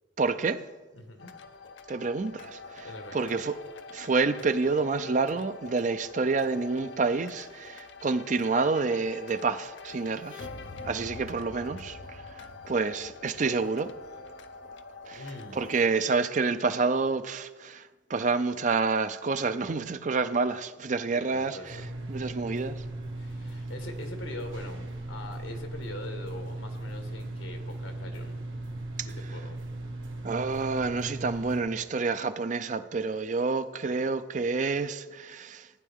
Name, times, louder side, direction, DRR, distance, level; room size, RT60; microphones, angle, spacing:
voice 1, 0.2-0.6 1.9-2.9 3.1-3.5 3.9-10.5 10.8-12.2 12.7-13.9 15.1-15.2 15.5-21.8 22.1-22.8 30.2-35.7, right 4 dB, 40° right, 0.5 m, -28 dB
voice 2, 0.9-1.3 2.8-3.2 15.1-15.6 21.1-21.9 23.2-28.4 29.0-29.6, left 2 dB, 85° left, 1.6 m, -43 dB
sound 1, 1.2-15.9, left 4 dB, 65° left, 0.6 m, -45 dB
sound 2, 21.7-31.6, right 2 dB, 85° right, 1.7 m, -38 dB
15.5 x 9.5 x 3.6 m
head